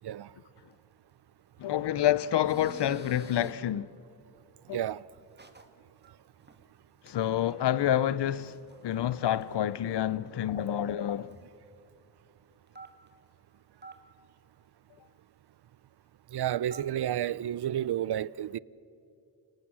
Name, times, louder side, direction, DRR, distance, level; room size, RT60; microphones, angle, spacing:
voice 1, 1.6-3.9 4.7-4.8 7.0-8.6 8.8-11.3, left 11 dB, 85° left, 0.6 m, -28 dB
sound 1, 2.3-3.5 5.4-5.7 6.0-6.1 6.4-6.6 7.1-7.2 7.5-7.6 8.4-9.6 10.0-10.1 10.3-10.4 10.6-10.7 11.3-11.7 12.7-13.3 13.8-14.0 16.4-17.0, right 3 dB, 25° right, 1.9 m, -49 dB
voice 2, 4.7-5.0 16.3-18.6, right 11 dB, 75° right, 0.6 m, -31 dB
30.0 x 18.5 x 7.6 m
wide cardioid pair, 85°, 40 cm